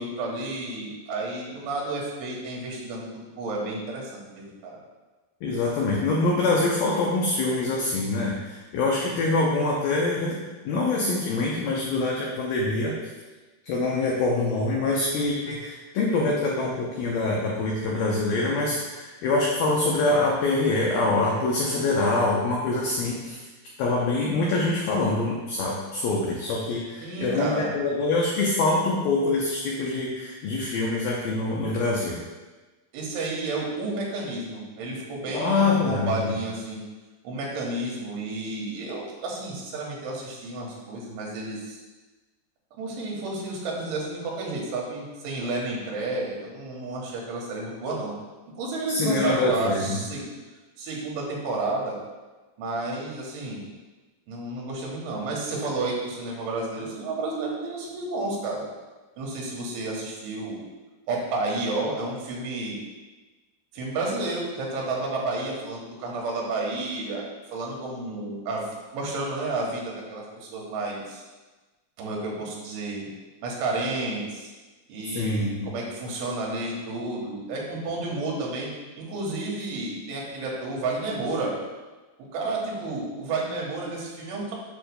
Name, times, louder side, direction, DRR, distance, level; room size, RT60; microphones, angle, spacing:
voice 1, 0.0-4.8 27.0-27.7 32.9-36.8 37.2-41.8 42.8-48.1 48.6-50.3 50.8-52.0 52.6-53.6 54.3-58.6 59.2-60.6 61.1-62.8 63.7-71.2 72.0-73.1 73.4-74.5 74.9-78.7 79.0-81.5 82.3-84.6, right 2 dB, 85° right, -2 dB, 3.8 m, -31 dB
voice 2, 5.4-10.4 10.7-12.9 13.6-23.4 23.8-32.2 35.3-36.3 48.9-50.0 75.1-75.6, left 2 dB, 85° left, -3 dB, 2.0 m, -25 dB
9.0 x 7.0 x 2.2 m, 1.2 s
omnidirectional pair, 5.3 m